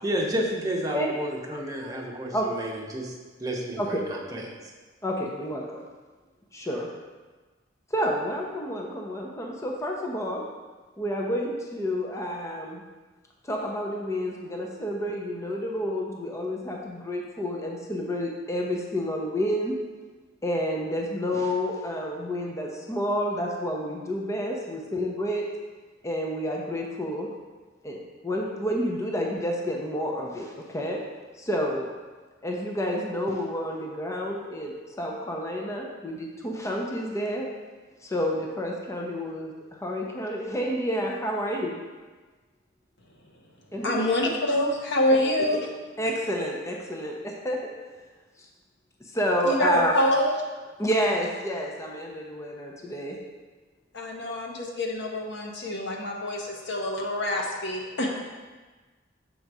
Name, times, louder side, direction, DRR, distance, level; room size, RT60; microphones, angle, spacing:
voice 1, 0.0-3.1 3.4-4.5, right 1 dB, 20° right, -2 dB, 0.9 m, -31 dB
voice 2, 5.0-5.8 6.5-6.9 7.9-10.4 11.0-12.8 13.4-19.8 20.4-25.5 26.0-27.3 27.8-31.0 31.3-31.9 32.4-37.5 38.0-39.5 39.8-41.8 43.7-44.1 45.5-45.6 46.0-47.7 48.4-48.5 49.1-49.9 50.8-53.2, equal, 15° left, -1 dB, 0.6 m, -29 dB
voice 3, 43.8-45.7 49.4-50.3 53.9-58.2, left 1 dB, 65° left, 0 dB, 1.0 m, -26 dB
6.4 x 3.9 x 4.7 m, 1.3 s
head